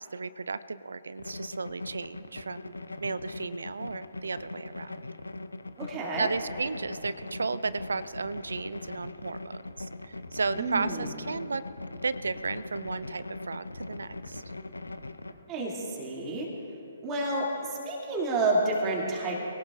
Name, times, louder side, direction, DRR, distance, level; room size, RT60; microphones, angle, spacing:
voice 1, 0.0-2.7 3.0-5.1 6.2-11.6 12.0-14.4, right 4 dB, 65° right, 15 dB, 0.4 m, -34 dB
sound 1, 1.2-15.3, left 2 dB, 75° left, 0.7 m, -41 dB
voice 2, 5.8-6.3 10.6-11.1 15.5-16.5 17.0-19.4, right 2 dB, 20° right, -3 dB, 2.4 m, -29 dB
24.0 x 17.5 x 2.4 m, 2.8 s
figure-of-eight pair, 130°, 0 cm